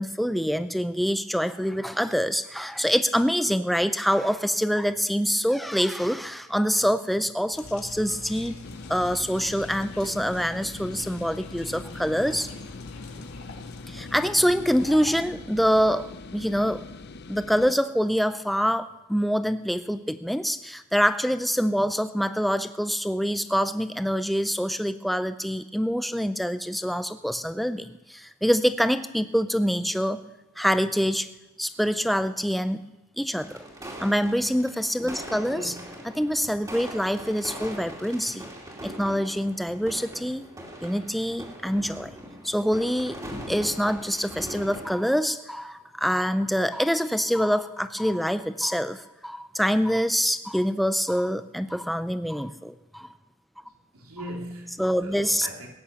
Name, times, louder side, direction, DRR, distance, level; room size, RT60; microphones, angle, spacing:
voice 1, 0.0-8.6 8.9-12.5 13.9-16.8 17.3-30.2 30.6-31.3 31.6-32.8 33.2-33.6 34.0-35.7 36.2-38.5 38.8-40.4 40.8-42.1 42.4-43.2 43.5-53.1 54.8-55.5, equal, ahead, 11 dB, 0.4 m, -25 dB
sound 1, 7.5-15.1, left 3 dB, 75° left, 1.9 m, -43 dB
sound 2, 8.6-17.7, left 3 dB, 50° left, 0.6 m, -43 dB
sound 3, 33.4-45.0, equal, 15° right, 2.6 m, -41 dB
voice 2, 53.9-55.7, right 1 dB, 80° right, 0 dB, 2.9 m, -40 dB
17.5 x 9.8 x 6.9 m, 0.98 s
head